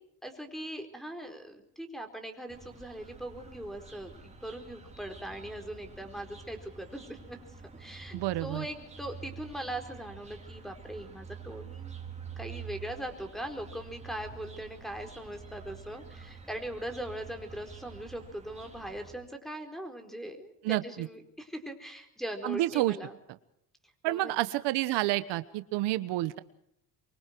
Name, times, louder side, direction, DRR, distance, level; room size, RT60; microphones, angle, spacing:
voice 1, 0.2-7.4 7.8-11.9 12.4-23.2 24.1-24.4, right 1 dB, ahead, 6 dB, 4.4 m, -40 dB
sound 1, 2.5-19.1, right 5 dB, 15° right, 4.4 m, -47 dB
voice 2, 8.1-8.7 20.6-21.1 22.4-23.0 24.0-26.4, right 16 dB, 85° right, 13 dB, 1.2 m, -29 dB
25.0 x 24.0 x 4.6 m, 0.74 s
cardioid pair, 110°, 41 cm